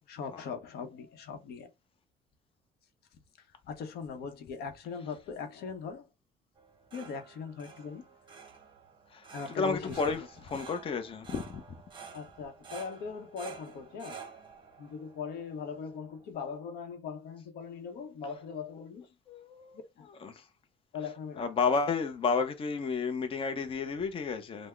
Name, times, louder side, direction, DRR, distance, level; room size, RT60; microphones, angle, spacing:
voice 1, 0.1-1.7 3.7-6.1 6.9-8.0 9.3-10.1 12.1-14.2 14.8-19.1 20.0-20.1 20.9-21.5, left 5 dB, 70° left, 0.8 m, -40 dB
sound 1, 6.6-16.3, right 5 dB, 30° right, 0.8 m, -50 dB
voice 2, 9.1-11.8 19.3-20.5 21.0-24.7, left 5 dB, 35° left, 0.6 m, -32 dB
3.5 x 2.0 x 3.1 m
cardioid pair, 110°, 17 cm